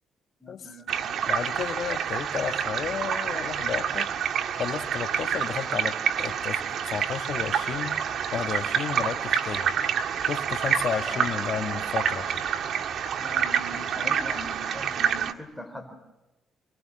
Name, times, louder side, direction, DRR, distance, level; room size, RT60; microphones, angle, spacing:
voice 1, 0.4-1.0 11.1-11.6 13.2-15.9, left 1 dB, 5° left, 6 dB, 4.8 m, -41 dB
sound 1, 0.9-15.3, right 8 dB, 65° right, 1.6 m, -28 dB
voice 2, 1.2-4.1 4.6-7.9 8.3-9.8 10.2-12.4, left 8 dB, 60° left, 8 dB, 1.4 m, -33 dB
29.0 x 21.0 x 7.7 m, 0.99 s
cardioid pair, 90°, 0 cm